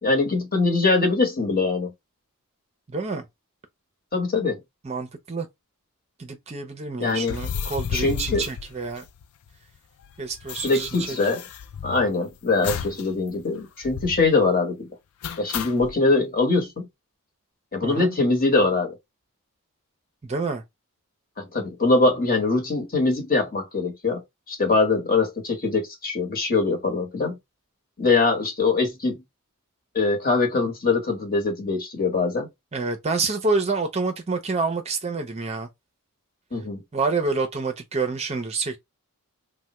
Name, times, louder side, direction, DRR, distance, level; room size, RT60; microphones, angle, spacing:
voice 1, 0.0-1.9 4.1-4.6 7.0-7.4 7.9-8.4 10.6-11.4 11.8-14.9 15.4-16.9 17.7-18.9 21.4-24.2 24.5-27.4 28.0-29.2 29.9-32.5 36.5-36.8, left 3 dB, 40° left, 1.1 m, -22 dB
voice 2, 2.9-3.2 4.8-5.5 6.2-9.0 10.2-11.2 17.8-18.1 20.2-20.6 32.7-35.7 36.9-38.8, right 3 dB, 30° right, 0.5 m, -27 dB
sound 1, 7.2-9.5 9.8-9.9 10.0-12.1 12.6-13.1 13.3-13.4 13.8-14.3 15.2-16.0, left 7 dB, 70° left, 0.4 m, -33 dB
3.3 x 2.1 x 2.9 m
head